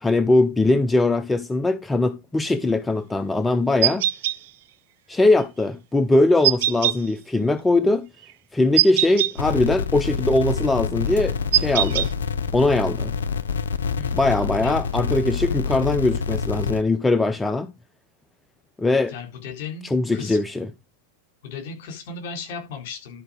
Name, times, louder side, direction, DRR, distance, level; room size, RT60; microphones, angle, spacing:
voice 1, 0.0-4.1 5.1-8.1 8.5-12.1 12.5-13.1 14.1-17.7 18.8-19.1 19.8-20.7, left 2 dB, 10° left, 0.5 m, -21 dB
sound 1, 3.8-4.4 6.4-7.0 8.8-9.3 11.5-12.1, right 13 dB, 55° right, 0.5 m, -20 dB
sound 2, 9.4-16.8, left 6 dB, 65° left, 0.7 m, -27 dB
voice 2, 19.1-19.9 20.1-20.4 21.4-23.2, left 5 dB, 50° left, 4.1 m, -35 dB
11.5 x 5.0 x 5.1 m
figure-of-eight pair, 90°, 0 cm